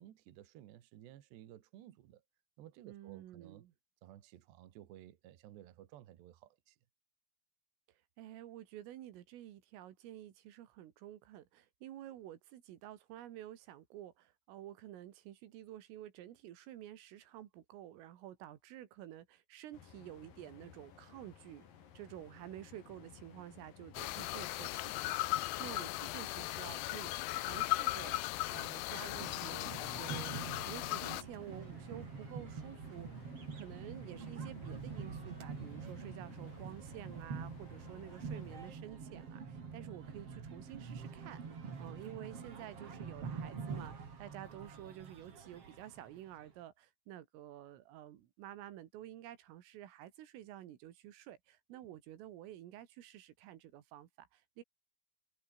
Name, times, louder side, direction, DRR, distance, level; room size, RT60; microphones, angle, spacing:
voice 1, 0.0-2.2 2.6-3.7 4.0-6.8, right 12 dB, 65° right, 3.7 m, -56 dB
voice 2, 2.9-3.7 7.9-21.7 22.0-54.6, right 12 dB, 85° right, 4.5 m, -51 dB
sound 1, 19.7-38.7, left 8 dB, 50° left, 3.9 m, -58 dB
sound 2, 23.9-31.2, left 18 dB, 85° left, 2.3 m, -37 dB
sound 3, 29.2-46.5, right 5 dB, 35° right, 3.7 m, -46 dB
omnidirectional pair, 5.7 m